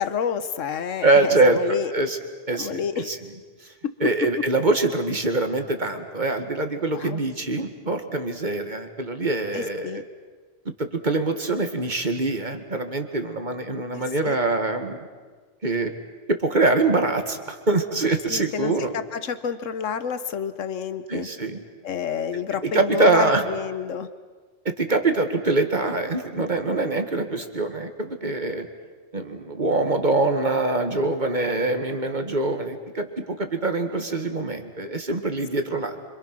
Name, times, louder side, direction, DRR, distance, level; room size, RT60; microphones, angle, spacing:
voice 1, 0.0-1.9 2.5-3.1 3.8-4.1 4.4-4.5 6.9-7.2 9.5-10.0 13.9-14.4 18.3-21.3 21.8-24.1, left 7 dB, 85° left, 12 dB, 1.4 m, -29 dB
voice 2, 1.0-2.2 2.5-3.2 4.0-10.0 10.8-15.0 15.6-15.9 16.3-18.9 21.1-21.6 22.6-23.4 24.7-28.7 29.1-36.0, right 2 dB, 40° right, 6 dB, 1.9 m, -24 dB
27.0 x 26.0 x 6.1 m, 1.4 s
omnidirectional pair, 1.3 m